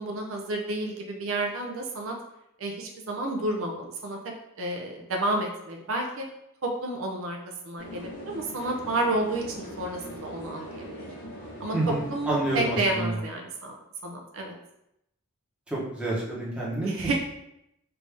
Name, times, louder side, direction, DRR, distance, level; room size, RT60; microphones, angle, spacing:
voice 1, 0.0-2.2 2.6-6.3 6.6-7.4 7.6-10.9 11.6-13.8 14.0-14.6 16.8-17.1, right 2 dB, 65° right, 1 dB, 0.5 m, -30 dB
sound 1, 7.8-13.0, equal, 85° left, 1.0 m, -41 dB
voice 2, 11.7-13.2 15.7-17.1, right 2 dB, 5° right, -7 dB, 0.9 m, -29 dB
3.4 x 2.6 x 3.3 m, 0.81 s
head